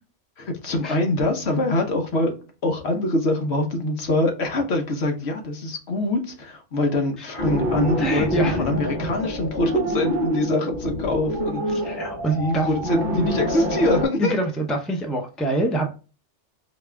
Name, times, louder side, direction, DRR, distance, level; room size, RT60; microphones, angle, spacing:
voice 1, 0.4-2.3 2.6-12.0 12.3-14.3, left 2 dB, 60° left, 1.1 m, -24 dB
sound 1, 7.4-14.0, equal, 45° right, 0.9 m, -26 dB
voice 2, 8.0-8.6 11.8-12.7 14.2-15.9, right 2 dB, ahead, 0.5 m, -25 dB
4.6 x 2.4 x 3.2 m
omnidirectional pair, 1.2 m